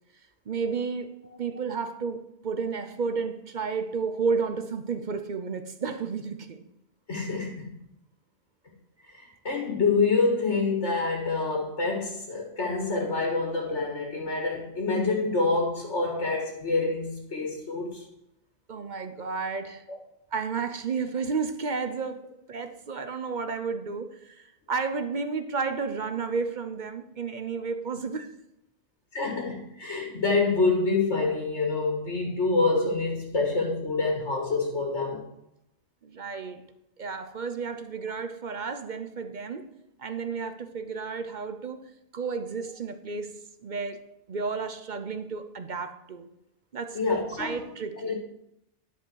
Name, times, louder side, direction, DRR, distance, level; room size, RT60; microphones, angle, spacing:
voice 1, 0.5-6.6 18.7-19.8 20.3-28.3 36.0-36.6 37.0-39.7 40.0-46.3 46.7-47.0 47.4-48.2, right 5 dB, 45° right, 0.7 m, -32 dB
voice 2, 7.1-7.7 9.0-18.0 29.1-35.2 46.9-47.6 48.0-48.2, left 3 dB, 75° left, 2.1 m, -27 dB
10.0 x 5.4 x 6.4 m
omnidirectional pair, 1.2 m